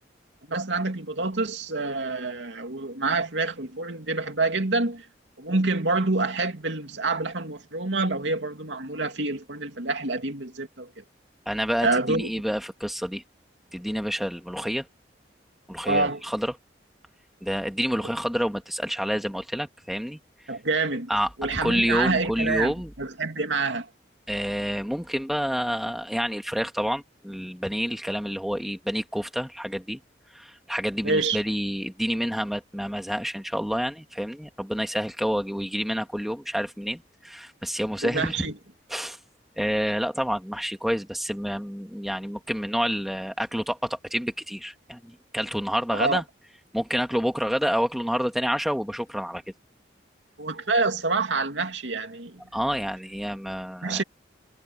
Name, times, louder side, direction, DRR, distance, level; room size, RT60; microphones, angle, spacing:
voice 1, 0.5-5.1 5.4-11.0 11.8-12.3 15.9-16.2 20.5-21.1 21.4-23.9 31.0-31.4 38.0-38.5 45.9-46.2 50.4-52.4 53.8-54.0, right 3 dB, 80° right, 2.6 m, -27 dB
voice 2, 11.5-13.2 13.7-14.9 15.7-16.5 17.4-20.2 21.1-21.3 21.6-22.9 24.3-30.0 30.3-38.4 38.9-39.2 39.6-46.2 46.7-49.4 52.5-54.0, equal, ahead, 1.8 m, -28 dB
head